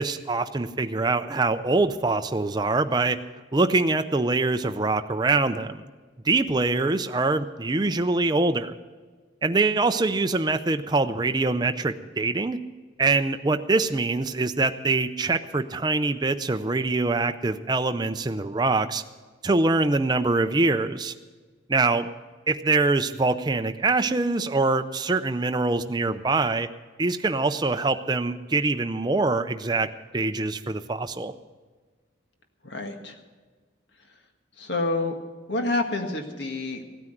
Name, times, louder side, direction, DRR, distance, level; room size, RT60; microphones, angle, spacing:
voice 1, 0.0-3.2 3.5-5.8 6.2-8.8 9.4-12.6 13.0-19.0 19.4-21.1 21.7-22.1 22.5-26.7 27.0-31.3, right 3 dB, 20° right, 8 dB, 0.5 m, -24 dB
voice 2, 32.6-33.2 34.6-35.1 35.5-36.8, left 2 dB, 70° left, 5 dB, 1.7 m, -28 dB
16.0 x 9.6 x 7.8 m, 1.4 s
head